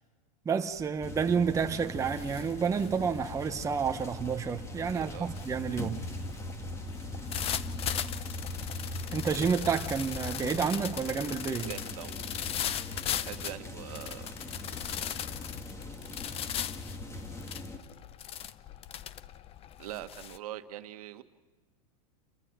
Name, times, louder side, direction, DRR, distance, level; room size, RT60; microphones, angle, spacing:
voice 1, 0.4-6.0 9.1-11.7, right 6 dB, 15° right, 1.0 m, -30 dB
sound 1, 0.7-1.1 1.4-20.4, left 10 dB, 30° left, 0.8 m, -39 dB
sound 2, 1.0-17.8, left 2 dB, 15° left, 2.5 m, -40 dB
voice 2, 4.9-5.4 11.6-12.3 13.2-14.3 19.8-21.2, right 13 dB, 70° right, 1.6 m, -43 dB
29.5 x 14.5 x 8.8 m
hypercardioid pair, 120°, 19 cm